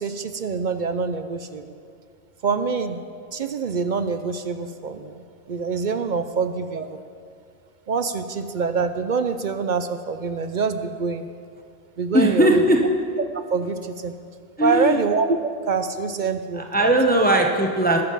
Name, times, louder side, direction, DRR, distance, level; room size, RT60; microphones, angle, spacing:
voice 1, 0.0-1.7 2.4-3.0 3.3-5.2 5.5-7.0 7.9-11.3 12.0-12.6 13.3-14.1 14.6-15.3 15.7-17.0, right 5 dB, 55° right, 9 dB, 0.6 m, -25 dB
voice 2, 12.1-12.8 14.6-15.0 16.6-18.0, right 1 dB, 10° left, 2 dB, 0.9 m, -19 dB
20.5 x 7.2 x 5.5 m, 2.3 s
omnidirectional pair, 1.2 m